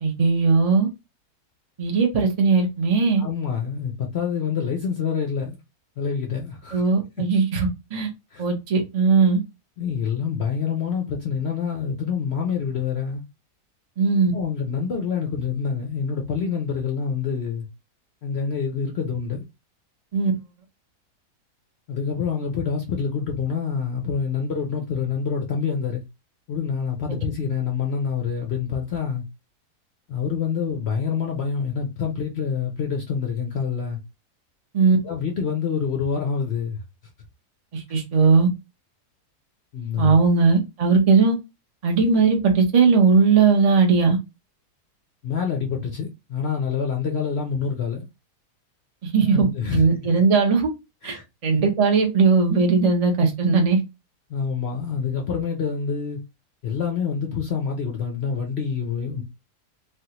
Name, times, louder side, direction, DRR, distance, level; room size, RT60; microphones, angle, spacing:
voice 1, 0.0-0.9 1.8-3.2 6.7-8.1 8.4-9.4 14.0-14.3 20.1-20.3 34.7-35.0 37.7-38.5 40.0-41.4 41.8-44.2 49.0-49.5 49.7-50.7 51.0-53.8, right 4 dB, 60° right, 0.3 m, -18 dB
voice 2, 3.2-5.6 6.0-6.8 8.3-8.4 9.8-13.2 14.3-17.7 18.2-19.5 21.9-26.0 26.5-29.2 30.1-34.0 35.0-36.8 39.7-40.2 45.2-48.1 49.3-49.8 51.0-51.2 54.3-56.2 56.6-59.2, left 6 dB, 65° left, 0.6 m, -26 dB
3.3 x 2.3 x 2.8 m
omnidirectional pair, 1.7 m